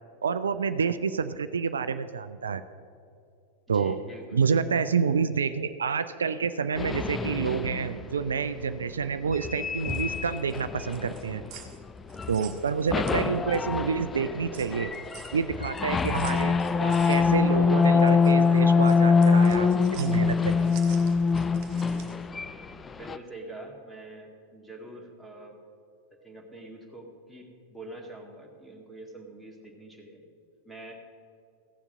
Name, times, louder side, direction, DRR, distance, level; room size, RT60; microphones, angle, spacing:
voice 1, 0.2-2.6 3.7-4.0 4.3-11.4 12.3-14.9 15.3-20.7, right 6 dB, 70° right, 11 dB, 0.4 m, -28 dB
voice 2, 3.7-4.9 12.1-12.4 21.8-22.1 23.0-25.6 26.2-30.3 30.7-30.9, right 2 dB, ahead, 1 dB, 1.9 m, -45 dB
sound 1, 6.8-8.1 9.3-11.8 12.1-12.5 12.9-23.2, left 5 dB, 15° left, 0.4 m, -24 dB
sound 2, 9.7-13.8 14.2-22.3, right 9 dB, 40° right, 1.4 m, -49 dB
15.0 x 7.2 x 6.3 m, 2.4 s
figure-of-eight pair, 90°, 0 cm